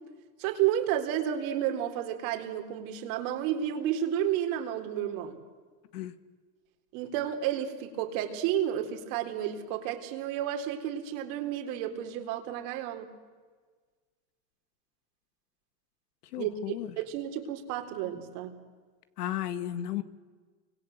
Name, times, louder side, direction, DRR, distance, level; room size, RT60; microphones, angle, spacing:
voice 1, 0.4-5.4 6.9-13.1 16.4-18.6, right 10 dB, 60° right, 5 dB, 3.9 m, -31 dB
voice 2, 16.3-16.9 19.2-20.0, left 12 dB, 80° left, 12 dB, 1.8 m, -34 dB
29.5 x 25.0 x 8.0 m, 1.5 s
supercardioid pair, 130°, 46 cm